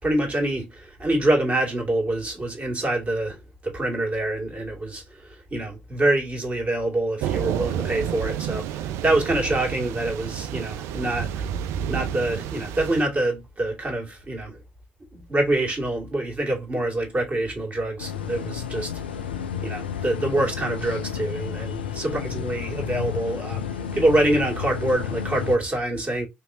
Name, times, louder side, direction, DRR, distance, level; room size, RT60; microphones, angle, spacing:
voice 1, 0.0-11.5 11.9-14.6 15.1-19.3 19.6-26.3, right 1 dB, 30° right, 2.6 m, -26 dB
Thunder / Rain, 7.2-13.0, right 10 dB, 65° right, 0.4 m, -30 dB
sound 1, 18.0-25.6, left 8 dB, 85° left, 0.4 m, -32 dB
5.1 x 3.0 x 2.8 m
figure-of-eight pair, 45°, 5 cm